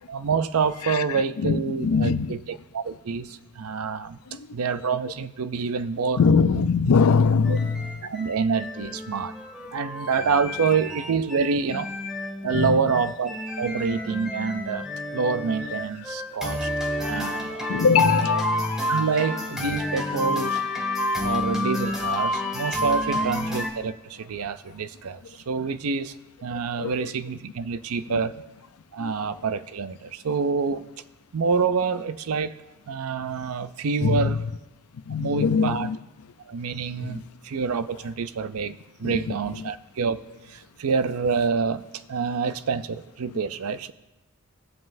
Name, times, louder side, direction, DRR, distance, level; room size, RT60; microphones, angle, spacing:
voice 1, 0.1-6.2 7.5-7.6 8.0-9.3 9.7-11.9 12.4-14.9 15.1-16.7 17.0-17.7 18.9-20.6 21.2-26.2 26.4-28.3 28.9-30.8 31.3-32.6 32.9-34.4 35.2-35.9 36.5-40.2 40.5-41.8 42.1-43.9, right 5 dB, 80° right, 0.5 m, -27 dB
voice 2, 0.8-2.3 4.3-4.5 6.2-8.0 12.5-12.9 17.7-18.8 23.1-23.2 25.6-25.7 26.5-27.1 28.1-28.2 29.0-29.1 34.0-34.4 34.9-36.0 37.0-37.2 39.0-39.7 43.3-43.4, left 5 dB, 90° left, 0.5 m, -23 dB
sound 1, 7.4-23.7, left 1 dB, 5° right, 1.7 m, -29 dB
20.0 x 7.5 x 2.6 m
head